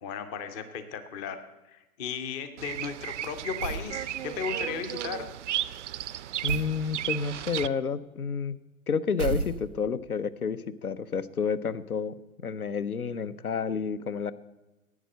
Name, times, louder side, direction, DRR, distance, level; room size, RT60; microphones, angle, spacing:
voice 1, 0.0-5.3, left 6 dB, 10° left, 10 dB, 0.4 m, -36 dB
Bird vocalization bird call bird song, 2.6-7.7, right 12 dB, 55° right, 0.5 m, -34 dB
sound 1, 3.6-4.0 6.5-6.8 9.2-10.0, right 4 dB, 85° right, 1.1 m, -32 dB
voice 2, 6.4-8.6 8.9-12.2 12.4-14.3, left 6 dB, 85° left, 14 dB, 0.7 m, -30 dB
11.0 x 8.3 x 7.6 m, 1.1 s
figure-of-eight pair, 110°, 43 cm